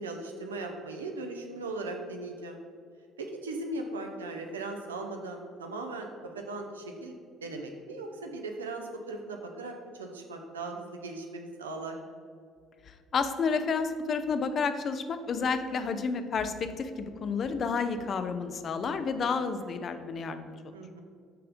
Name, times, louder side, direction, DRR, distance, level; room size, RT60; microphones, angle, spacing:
voice 1, 0.0-2.6 3.2-7.2 7.4-12.0 20.7-21.0, right 2 dB, 80° right, 3 dB, 0.5 m, -38 dB
voice 2, 13.1-20.6, left 5 dB, 45° left, 9 dB, 0.5 m, -30 dB
7.7 x 3.3 x 5.0 m, 2.1 s
figure-of-eight pair, 50°, 0 cm